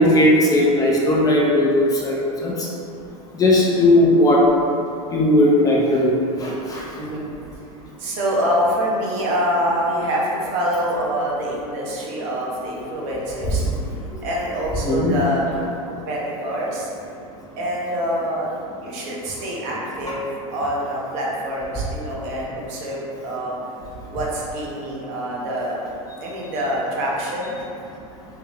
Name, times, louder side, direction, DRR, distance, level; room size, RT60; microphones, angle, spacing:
voice 1, 0.0-2.5 3.4-4.4 5.1-6.1 6.4-6.8 13.6-13.7 14.8-15.1, left 1 dB, 20° left, -3 dB, 0.4 m, -17 dB
voice 2, 7.0-7.3 8.0-13.6 14.2-16.9 17.6-18.5 18.8-23.5 24.1-25.8 26.2-27.6, equal, 55° right, -4 dB, 0.9 m, -25 dB
3.4 x 2.3 x 3.3 m, 2.5 s
hypercardioid pair, 110°, 19 cm